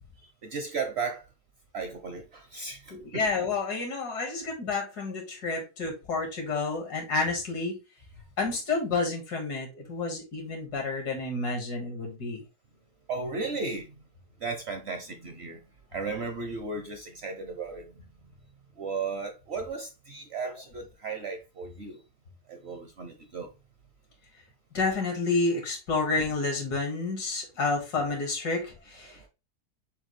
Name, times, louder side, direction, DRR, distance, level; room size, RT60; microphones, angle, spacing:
voice 1, 0.4-1.2 1.7-3.2 13.1-13.9 14.4-15.6 15.9-17.9 18.8-22.0 22.5-23.5 29.1-29.3, right 4 dB, 60° right, 0.7 m, -35 dB
voice 2, 2.9-7.8 8.4-12.4 24.7-29.3, left 3 dB, 80° left, 2.1 m, -30 dB
6.9 x 2.3 x 3.1 m
omnidirectional pair, 1.7 m